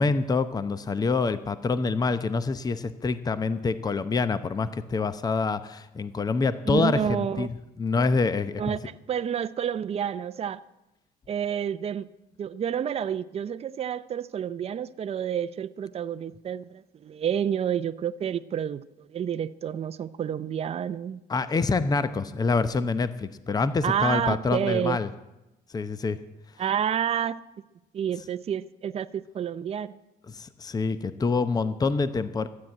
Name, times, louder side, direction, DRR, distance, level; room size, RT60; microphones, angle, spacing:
voice 1, 0.0-8.8 21.3-25.1 25.7-26.2 30.3-32.5, left 4 dB, 20° left, 0.7 m, -26 dB
voice 2, 6.7-7.5 8.6-10.6 11.3-12.1 12.4-21.2 23.8-25.0 26.6-27.4 27.9-30.0, right 9 dB, 35° right, 0.6 m, -29 dB
13.0 x 9.5 x 8.7 m
cardioid pair, 110°, 17 cm